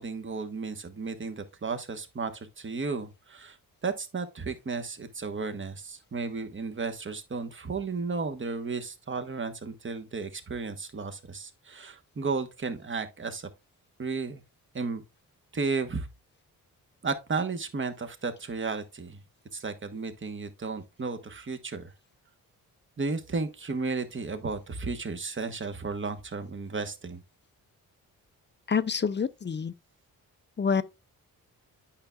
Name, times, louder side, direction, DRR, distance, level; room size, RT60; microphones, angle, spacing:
voice 1, 0.0-3.6 3.8-13.5 14.0-14.4 14.7-15.0 15.5-16.1 17.0-19.2 19.5-21.9 23.0-27.2, right 4 dB, 35° right, 1.1 m, -33 dB
voice 2, 28.7-29.7 30.6-30.8, left 6 dB, 30° left, 0.5 m, -27 dB
8.7 x 5.7 x 2.3 m
cardioid pair, 60°, 37 cm